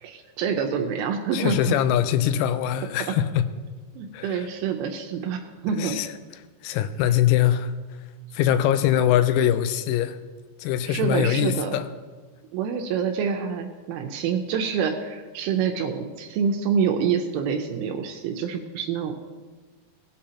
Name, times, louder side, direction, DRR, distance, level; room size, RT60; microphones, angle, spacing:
voice 1, 0.0-1.8 4.0-6.0 10.9-11.8 12.5-19.1, right 6 dB, 80° right, 3 dB, 2.9 m, -27 dB
voice 2, 1.3-3.4 4.1-4.5 5.8-6.1 6.6-7.7 8.3-10.2 10.6-11.8, left 10 dB, 85° left, 11 dB, 3.3 m, -22 dB
18.0 x 8.6 x 2.8 m, 1.4 s
omnidirectional pair, 6.0 m